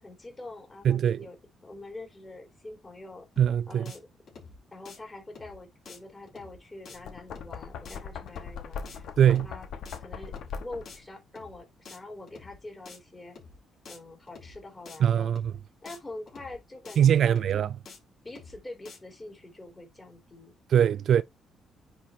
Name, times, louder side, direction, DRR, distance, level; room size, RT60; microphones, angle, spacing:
voice 1, 0.0-1.4 1.6-3.3 3.7-4.1 4.7-9.7 10.0-13.4 13.9-15.3 15.8-17.4 18.2-20.6, left 2 dB, 20° left, 4.1 m, -45 dB
voice 2, 0.8-1.3 3.4-3.9 9.2-9.5 15.0-15.5 17.0-17.8 20.7-21.2, right 9 dB, 65° right, 0.3 m, -22 dB
sound 1, 3.4-3.6 3.9-4.0 4.3-4.6 4.8-5.0 5.4-5.6 5.9-6.0 6.3-6.6 6.9-7.0 7.4-7.6 7.8-8.0 8.3-8.6 8.9-9.0 9.4-9.6 9.9-10.0 10.3-10.6 10.9-11.0 11.4-11.6 11.8-12.0 12.3-12.6 12.9-13.0 13.4-13.6 13.8-14.0 14.3-14.6 14.9-15.0 15.4-15.6 15.9-16.0 16.3-16.6 16.8-17.0 17.4-17.6 17.9-18.0 18.3-18.6 18.8-19.0, left 4 dB, 60° left, 4.5 m, -48 dB
Knock, 6.9-11.0, left 6 dB, 75° left, 1.1 m, -40 dB
9.9 x 4.8 x 2.7 m
cardioid pair, 90°, 0 cm